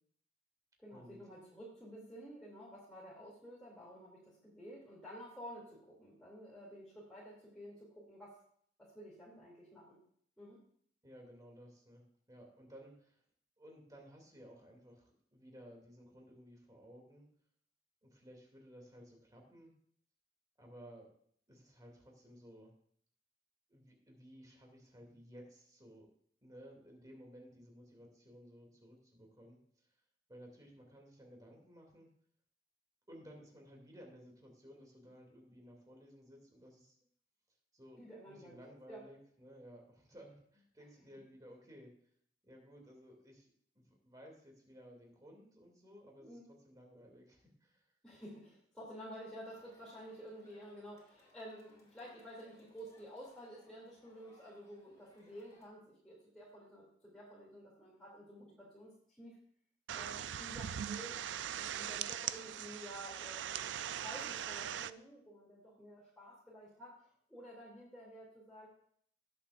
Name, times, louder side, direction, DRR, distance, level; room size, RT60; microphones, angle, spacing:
voice 1, 0.8-8.3 8.8-10.0 10.4-10.6 38.0-38.6 38.9-39.0 46.2-46.4 48.0-59.4 59.9-63.7 64.0-68.7, equal, 5° left, -7 dB, 2.6 m, -52 dB
voice 2, 11.0-13.2 13.6-17.3 18.0-19.7 20.6-21.1 21.5-22.7 23.7-26.1 26.4-29.9 30.3-32.1 33.1-37.0 37.7-38.0 38.3-41.9 42.4-47.8, equal, 20° right, 0 dB, 2.5 m, -57 dB
Crowd, 49.4-55.7, left 1 dB, 20° left, 2.7 m, -67 dB
sound 1, 59.9-64.9, right 10 dB, 85° right, 0.4 m, -41 dB
19.0 x 7.0 x 2.5 m, 0.63 s
head